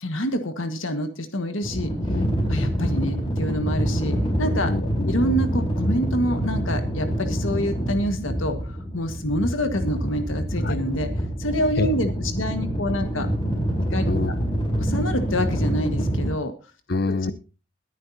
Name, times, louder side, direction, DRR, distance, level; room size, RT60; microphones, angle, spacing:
voice 1, 0.0-1.9 2.5-4.7 5.0-11.1 11.4-13.3 13.8-14.0 14.8-16.5, equal, 90° left, 7 dB, 1.6 m, -27 dB
sound 1, 1.6-16.3, equal, 25° left, 4.6 m, -26 dB
voice 2, 2.1-2.7 4.6-5.4 10.6-10.8 11.8-11.9 14.1-14.3 16.9-17.3, left 3 dB, 50° left, 15 dB, 0.8 m, -27 dB
22.5 x 10.0 x 2.8 m, 0.33 s
head